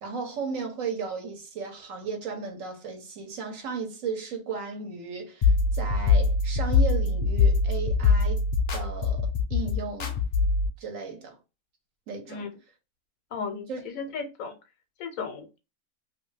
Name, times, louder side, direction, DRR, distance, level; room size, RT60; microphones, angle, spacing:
voice 1, 0.0-8.4 8.7-10.2 10.8-11.4 12.1-12.4 13.7-13.8, right 5 dB, 65° right, 1.2 m, -35 dB
sound 1, 5.4-10.7, left 4 dB, 55° left, 0.6 m, -23 dB
voice 2, 13.3-14.6 15.0-15.6, left 5 dB, 70° left, 1.1 m, -35 dB
2.8 x 2.7 x 3.2 m
omnidirectional pair, 1.6 m